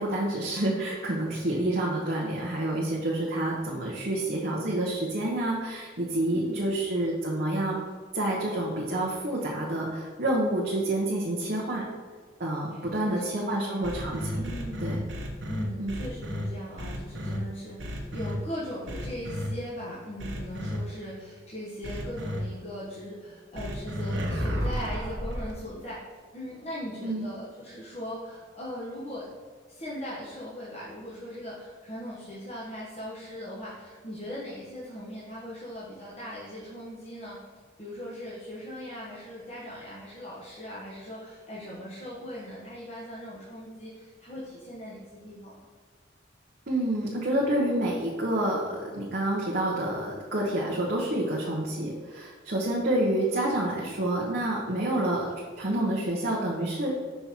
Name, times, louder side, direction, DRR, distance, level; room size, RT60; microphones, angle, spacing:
voice 1, 0.0-7.8 8.1-11.8 12.4-14.4 14.8-14.9 15.8-16.0 27.0-27.3 46.7-55.3 55.6-56.9, right 1 dB, 55° right, -4 dB, 1.1 m, -28 dB
voice 2, 6.3-6.7 12.7-13.9 14.3-15.0 15.5-29.3 29.7-37.4 37.8-45.7, equal, 35° left, -8 dB, 1.3 m, -39 dB
sound 1, 13.8-16.4 16.8-17.4 17.8-18.3 18.9-19.5 20.2-20.8 21.8-22.4 23.5-25.5, equal, 75° right, 1.2 m, -33 dB
5.7 x 5.4 x 4.5 m, 1.5 s
head